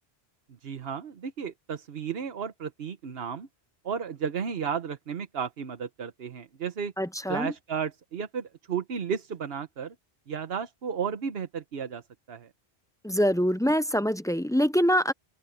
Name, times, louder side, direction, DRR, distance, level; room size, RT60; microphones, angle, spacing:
voice 1, 0.6-3.5 3.8-6.9 7.3-9.9 10.3-12.0 12.3-12.5, right 7 dB, 70° right, 1.2 m, -33 dB
voice 2, 7.0-7.5 13.0-15.1, equal, 5° left, 0.3 m, -24 dB
open air
omnidirectional pair, 1.1 m